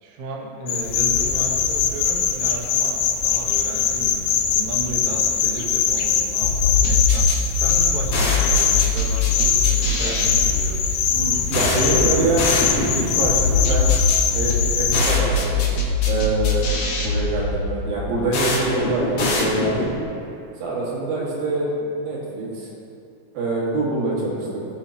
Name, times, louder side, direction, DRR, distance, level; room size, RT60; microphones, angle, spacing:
voice 1, 0.0-7.3 7.6-10.8 17.0-17.1, right 2 dB, 60° right, -1 dB, 1.6 m, -34 dB
sound 1, 0.7-15.1, left 7 dB, 80° left, 2.2 m, -22 dB
sound 2, 6.4-20.0, left 3 dB, 60° left, 1.7 m, -22 dB
voice 2, 11.1-12.5 12.8-13.9 14.3-15.7 16.1-16.6 17.0-19.9 20.6-22.7 23.4-24.7, right 3 dB, 90° right, -5 dB, 3.7 m, -25 dB
17.5 x 7.0 x 2.9 m, 2.7 s
omnidirectional pair, 4.0 m